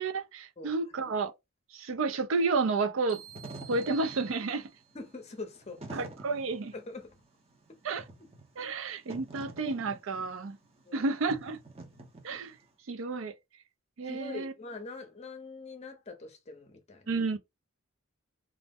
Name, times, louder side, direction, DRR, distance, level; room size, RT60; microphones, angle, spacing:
voice 1, 0.0-1.3 1.7-3.2 3.6-4.7 5.9-6.7 7.8-8.0 8.6-10.6 10.9-11.6 12.2-12.6 12.9-13.3 14.0-14.5 17.1-17.4, right 3 dB, 70° right, 0.4 m, -31 dB
Wind / Fire, 3.1-12.6, right 2 dB, 30° right, 0.6 m, -47 dB
sound 1, 3.1-5.0, right 8 dB, 50° right, 1.1 m, -49 dB
voice 2, 4.9-6.1 6.7-7.2 10.9-11.0 14.0-17.2, left 3 dB, 30° left, 0.6 m, -43 dB
2.5 x 2.0 x 3.4 m
head